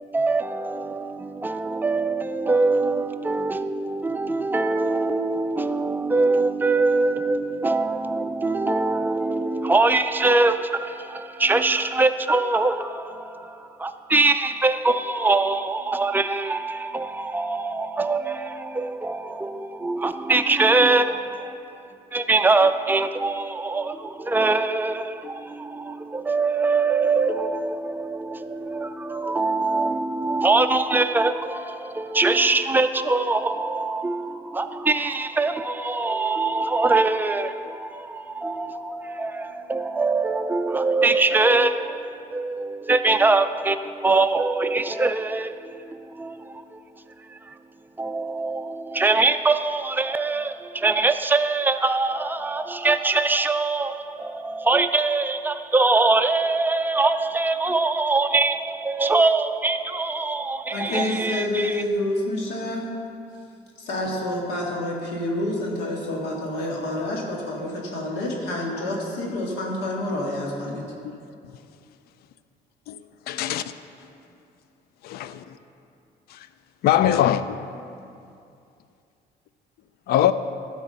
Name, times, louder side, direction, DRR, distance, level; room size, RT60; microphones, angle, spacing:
voice 1, 0.0-21.8 22.1-46.8 47.2-47.6 48.0-61.8, right 3 dB, 10° right, 0.4 m, -23 dB
voice 2, 60.7-62.9 63.8-70.8, left 1 dB, 90° left, 1.8 m, -28 dB
voice 3, 73.3-73.6 75.0-75.4 76.3-76.4 76.8-77.6 80.1-80.3, left 11 dB, 65° left, 0.4 m, -21 dB
12.0 x 4.7 x 6.6 m
cardioid pair, 110°, 17 cm